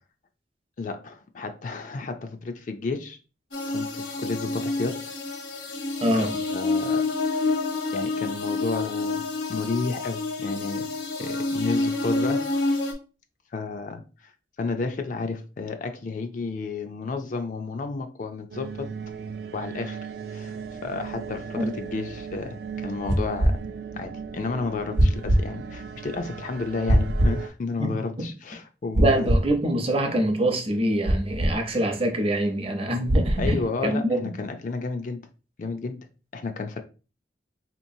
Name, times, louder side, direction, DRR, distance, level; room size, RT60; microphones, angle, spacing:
voice 1, 0.8-3.2 3.7-5.0 6.1-7.0 7.9-10.9 11.2-12.4 13.5-14.0 14.6-18.9 19.5-20.0 20.3-20.5 20.8-23.6 23.9-29.4 33.4-35.2 35.6-36.0 36.3-36.8, left 4 dB, 45° left, 0.4 m, -31 dB
sound 1, 3.5-12.9, left 3 dB, 80° left, 0.9 m, -28 dB
voice 2, 6.0-6.3 21.6-21.7 27.8-28.3 29.0-34.2, right 1 dB, 30° right, 0.7 m, -25 dB
sound 2, 18.5-27.5, right 6 dB, 60° right, 0.3 m, -37 dB
sound 3, 23.1-23.6 25.0-25.4 26.9-27.4 28.9-29.5 31.1-31.5 33.1-33.6, right 1 dB, 90° right, 0.8 m, -21 dB
3.7 x 2.9 x 2.6 m
head